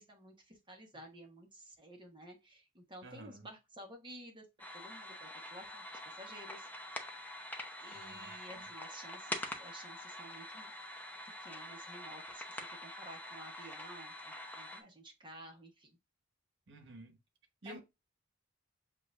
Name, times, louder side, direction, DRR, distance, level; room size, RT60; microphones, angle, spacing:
voice 1, 0.0-4.5 4.7-6.7 7.8-10.7 11.4-16.0 17.6-17.8, right 1 dB, 25° right, 1.2 m, -53 dB
voice 2, 3.0-3.5 7.9-8.7 16.7-17.2 17.6-17.8, right 1 dB, 65° right, 1.2 m, -52 dB
sound 1, 4.6-14.8, left 1 dB, 10° left, 0.7 m, -45 dB
7.3 x 2.6 x 2.4 m
head